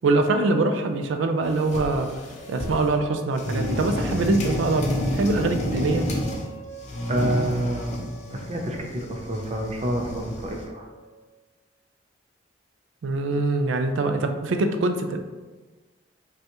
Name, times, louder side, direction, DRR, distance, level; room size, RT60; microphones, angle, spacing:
voice 1, 0.0-2.1 2.5-6.1 13.0-15.2, right 2 dB, 85° right, 7 dB, 0.4 m, -23 dB
sound 1, 1.5-3.0 3.4-6.5 6.8-10.7, left 1 dB, 35° left, 0.5 m, -30 dB
sound 2, 2.3-11.3, right 1 dB, 65° left, 0.9 m, -45 dB
voice 2, 7.1-8.0 8.3-10.8, right 1 dB, 35° right, 1 dB, 0.5 m, -28 dB
5.3 x 2.3 x 2.9 m, 1.3 s
head